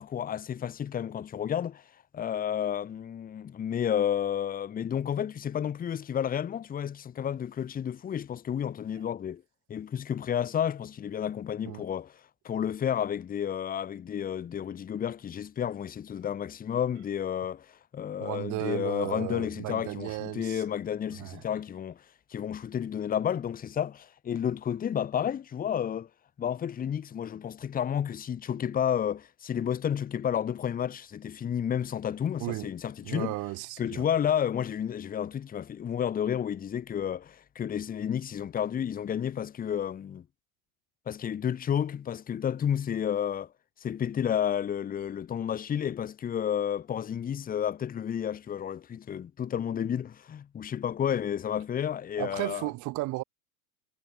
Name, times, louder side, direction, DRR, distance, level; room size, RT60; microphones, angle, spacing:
voice 1, 0.0-1.8 2.1-9.4 9.7-12.2 12.4-22.0 22.3-26.1 26.4-33.3 33.8-40.2 41.1-43.5 43.8-52.7, left 9 dB, 20° left, 1.2 m, -31 dB
voice 2, 18.2-20.6 21.2-21.4 32.4-32.7 33.0-34.0 52.2-53.2, right 20 dB, 40° right, 1.7 m, -34 dB
hypercardioid pair, 100°, 46 cm